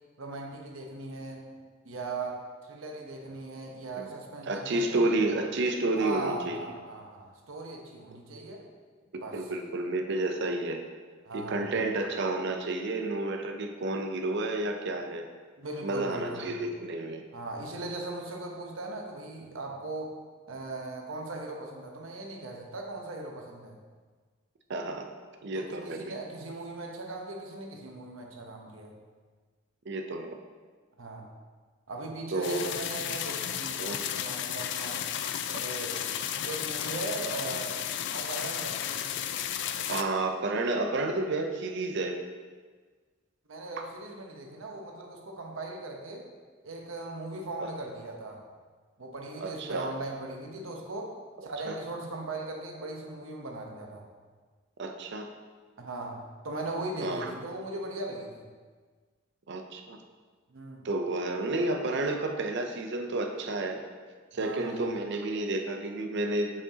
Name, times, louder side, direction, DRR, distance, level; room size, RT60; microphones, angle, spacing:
voice 1, 0.2-1.5 1.8-5.3 6.0-8.6 9.1-9.5 11.2-11.8 15.6-16.5 17.3-20.2 20.5-23.8 25.5-28.9 31.0-31.3 31.9-33.9 34.1-35.0 35.5-36.0 36.5-37.8 38.1-38.9 43.5-46.3 46.6-48.4 49.0-51.1 51.4-54.1 55.8-58.4 60.5-60.9 64.3-64.9, right 2 dB, 85° right, 1 dB, 0.9 m, -39 dB
voice 2, 4.4-6.6 9.1-10.8 11.3-15.3 15.8-17.2 24.7-25.1 25.4-26.1 29.9-30.3 32.3-32.7 33.8-34.0 39.9-42.2 43.8-43.9 47.6-47.7 49.4-49.9 51.7-51.8 54.8-55.3 57.0-57.3 59.5-60.0 60.8-63.8 64.3-66.6, right 2 dB, 60° right, 5 dB, 0.5 m, -30 dB
sound 1, 32.4-40.0, left 9 dB, 60° left, 0.3 m, -33 dB
6.8 x 5.4 x 2.8 m, 1.5 s
head